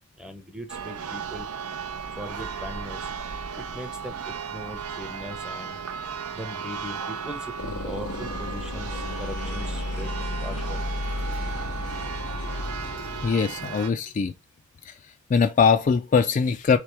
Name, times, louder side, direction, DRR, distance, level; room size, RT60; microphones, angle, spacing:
voice 1, 0.2-1.5 2.2-3.1 3.6-5.8 6.3-10.1 10.4-10.8, equal, 5° right, 0.7 m, -39 dB
Church bell, 0.7-13.9, right 6 dB, 85° right, 0.6 m, -35 dB
sound 1, 7.6-13.3, left 2 dB, 75° left, 0.8 m, -32 dB
voice 2, 13.2-14.3 14.9-15.0 15.3-16.8, left 5 dB, 35° left, 0.3 m, -21 dB
3.6 x 3.3 x 4.3 m
head